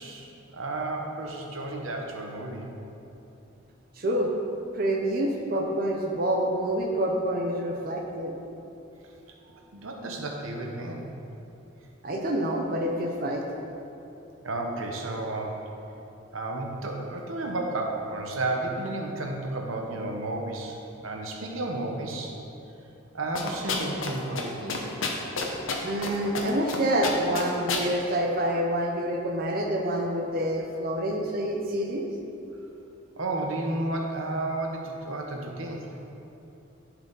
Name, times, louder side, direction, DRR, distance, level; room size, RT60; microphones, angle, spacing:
voice 1, 0.0-2.7 9.7-11.1 14.4-15.6 16.3-20.8 21.0-22.4 23.1-24.8 33.2-36.0, right 2 dB, 90° right, 1 dB, 1.0 m, -32 dB
voice 2, 4.0-4.3 4.7-8.3 12.0-13.4 25.8-32.0, right 1 dB, 45° right, 0 dB, 0.6 m, -27 dB
sound 1, 23.4-24.1 24.4-24.5 24.7-26.1 26.3-26.8 27.0-27.8, left 4 dB, 80° left, 0.9 m, -29 dB
11.0 x 4.8 x 3.9 m, 3.0 s
head